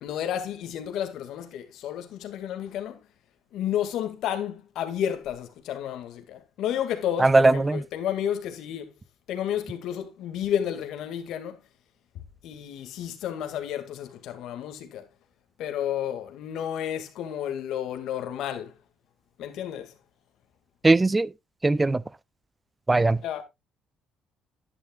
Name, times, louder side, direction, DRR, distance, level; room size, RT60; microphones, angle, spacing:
voice 1, 0.0-3.0 3.5-8.9 9.3-11.6 12.4-15.0 15.6-18.7 19.4-19.9 23.2-23.4, left 10 dB, 75° left, 2.1 m, -31 dB
voice 2, 7.2-7.8 20.8-21.3 21.6-22.0 22.9-23.2, right 2 dB, 15° right, 0.4 m, -19 dB
11.5 x 9.9 x 2.4 m
cardioid pair, 125°, 0 cm